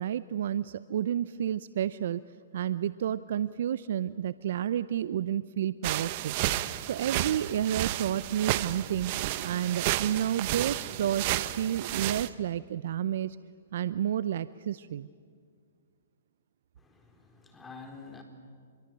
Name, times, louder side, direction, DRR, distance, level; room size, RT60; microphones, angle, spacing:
voice 1, 0.0-2.2 2.5-6.4 6.9-9.1 9.4-13.4 13.7-15.1, right 10 dB, 60° right, 16 dB, 0.7 m, -30 dB
sound 1, 5.8-12.3, right 15 dB, 45° right, 1.0 m, -32 dB
voice 2, 16.8-18.2, left 4 dB, 10° left, 4 dB, 4.2 m, -48 dB
27.0 x 23.0 x 9.2 m, 2.1 s
hypercardioid pair, 135°, 0 cm